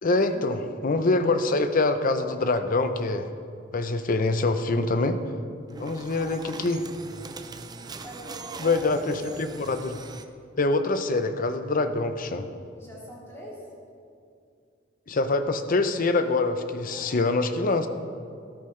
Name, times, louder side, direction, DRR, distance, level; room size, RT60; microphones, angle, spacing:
voice 1, 0.0-3.3 3.7-5.2 5.8-6.9 8.6-10.0 10.6-12.5 15.1-17.9, left 3 dB, 45° left, 9 dB, 0.6 m, -25 dB
sound 1, 5.7-10.2, right 4 dB, 20° right, 0.5 m, -41 dB
voice 2, 8.0-9.4 12.8-13.7 16.9-17.5, right 1 dB, 15° left, -7 dB, 3.2 m, -43 dB
13.0 x 13.0 x 3.2 m, 2.4 s
head